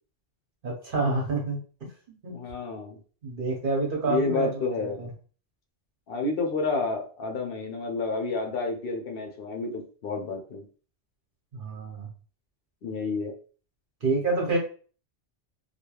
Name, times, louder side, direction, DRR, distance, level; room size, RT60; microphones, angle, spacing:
voice 1, 0.6-1.9 2.2-2.4 3.2-4.5 4.8-5.1 11.5-12.1 14.0-14.6, right 3 dB, 50° right, -1 dB, 0.9 m, -28 dB
voice 2, 2.3-3.0 4.0-5.0 6.1-10.6 12.8-13.3, left 3 dB, 60° left, 3 dB, 0.8 m, -30 dB
3.1 x 2.4 x 2.2 m, 0.40 s
omnidirectional pair, 1.2 m